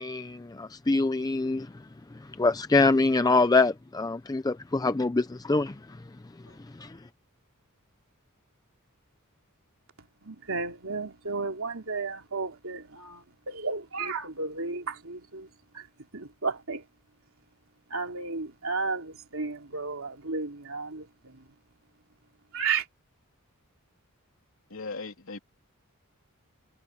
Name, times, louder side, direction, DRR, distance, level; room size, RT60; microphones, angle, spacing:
voice 1, 0.0-1.7 2.4-5.8 6.8-7.0, left 3 dB, 15° left, 0.4 m, -24 dB
voice 2, 10.3-15.5 15.7-15.9 16.1-16.8 17.9-21.3 22.5-22.8, right 4 dB, 65° right, 3.6 m, -33 dB
voice 3, 24.7-25.4, left 3 dB, 65° left, 3.4 m, -38 dB
head